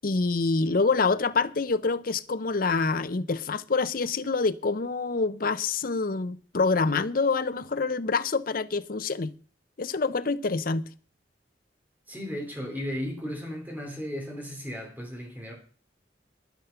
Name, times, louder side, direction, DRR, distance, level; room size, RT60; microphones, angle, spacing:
voice 1, 0.0-9.3 9.8-10.8, left 4 dB, 50° left, 0.7 m, -26 dB
voice 2, 12.1-15.5, equal, 10° right, 3.0 m, -35 dB
11.0 x 10.5 x 5.7 m
head